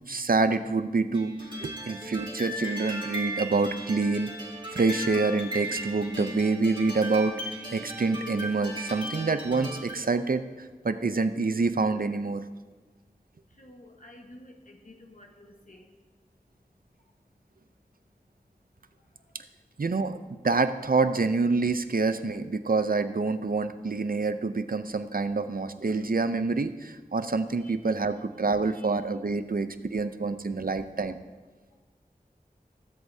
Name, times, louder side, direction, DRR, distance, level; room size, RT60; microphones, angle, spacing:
voice 1, 0.1-4.3 4.7-7.4 7.7-12.4 19.8-31.2, right 3 dB, 70° right, 10 dB, 0.6 m, -27 dB
sound 1, 1.1-10.0, right 1 dB, 30° right, 2.4 m, -37 dB
voice 2, 13.5-15.9 27.6-27.7 28.8-28.9, left 1 dB, 55° left, 1 dB, 1.4 m, -51 dB
20.0 x 8.0 x 2.8 m, 1.4 s
wide cardioid pair, 45°, 16 cm